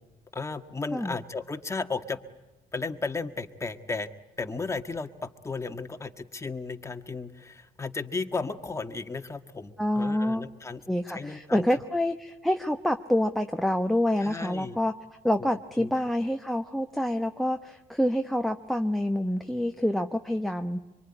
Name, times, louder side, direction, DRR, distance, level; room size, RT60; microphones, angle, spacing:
voice 1, 0.3-2.2 2.7-4.1 4.4-10.8 11.1-11.7 14.2-14.8 15.4-15.5 15.8-15.9, left 4 dB, 15° left, 6 dB, 1.6 m, -34 dB
voice 2, 9.8-10.4 10.9-14.9 15.2-20.8, left 1 dB, ahead, 5 dB, 0.9 m, -27 dB
24.5 x 24.5 x 9.9 m, 1.0 s
cardioid pair, 110°, 17 cm